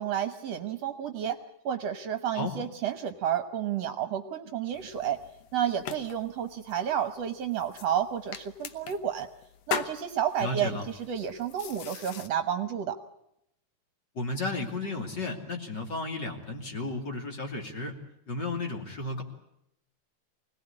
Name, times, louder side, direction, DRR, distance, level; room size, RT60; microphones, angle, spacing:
voice 1, 0.0-1.4 1.6-5.2 5.5-9.3 9.7-13.0, right 9 dB, 65° right, 9 dB, 2.0 m, -31 dB
sound 1, 4.7-12.3, left 9 dB, 65° left, 2.0 m, -41 dB
voice 2, 10.4-10.8 14.1-18.0 18.3-19.2, left 2 dB, 35° left, 3 dB, 3.1 m, -33 dB
25.0 x 18.5 x 9.8 m, 0.80 s
omnidirectional pair, 3.5 m